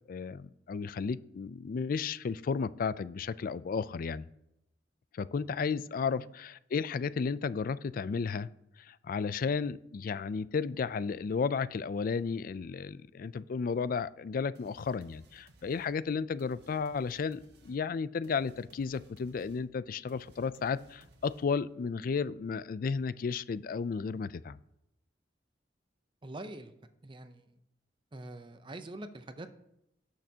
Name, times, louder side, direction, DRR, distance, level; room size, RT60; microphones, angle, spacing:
voice 1, 0.1-4.3 5.1-8.5 8.8-24.6, left 5 dB, 50° left, 17 dB, 0.3 m, -33 dB
sound 1, 14.5-21.7, right 2 dB, 65° right, 1.4 m, -61 dB
voice 2, 26.2-26.7 27.0-27.5 28.1-29.5, right 1 dB, 25° right, 9 dB, 0.6 m, -44 dB
18.0 x 6.5 x 2.8 m, 0.83 s
head